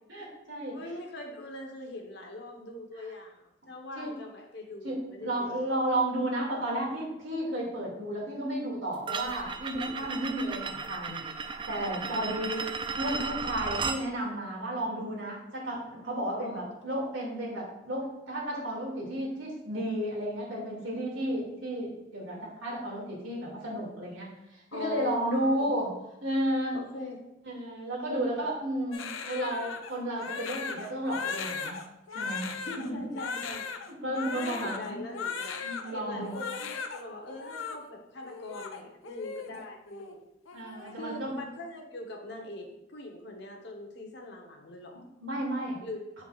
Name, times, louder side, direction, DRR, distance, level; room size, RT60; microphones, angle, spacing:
voice 1, 0.1-0.8 4.0-4.1 4.8-11.2 11.7-12.6 13.0-26.0 26.2-26.8 27.4-31.8 32.1-32.5 32.9-33.1 34.0-35.0 35.6-36.4 40.5-41.5 45.2-45.8, right 1 dB, 75° right, -4 dB, 2.5 m, -33 dB
voice 2, 0.7-5.5 12.1-12.7 16.3-16.6 24.7-25.7 26.7-27.2 32.6-33.7 34.2-35.6 35.9-40.2 40.9-45.0 45.8-46.0, left 2 dB, 60° left, 1 dB, 1.2 m, -42 dB
sound 1, 9.1-14.0, right 5 dB, 25° right, 0.3 m, -35 dB
Crying sobbing, 28.9-35.9 36.2-37.0 37.3-37.8 38.2-39.6 39.9-40.1 40.5-40.9, left 5 dB, 85° left, 0.6 m, -37 dB
7.4 x 7.0 x 2.5 m, 0.89 s
head